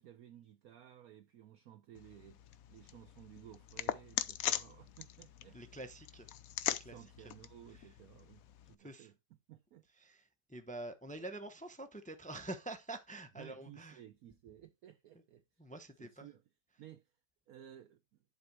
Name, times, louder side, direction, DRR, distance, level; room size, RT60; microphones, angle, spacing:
voice 1, 0.0-2.4 2.7-5.6 6.8-9.1 9.5-9.8 13.4-15.6 16.0-16.4 16.8-17.1 17.5-18.2, right 11 dB, 65° right, 1.1 m, -56 dB
sound 1, 1.9-8.7, left 11 dB, 65° left, 1.0 m, -41 dB
voice 2, 5.5-6.3 6.7-7.3 7.7-7.9 8.8-9.1 10.0-14.0 15.6-16.3, right 2 dB, 10° left, 0.3 m, -47 dB
11.0 x 4.0 x 4.7 m
omnidirectional pair, 1.8 m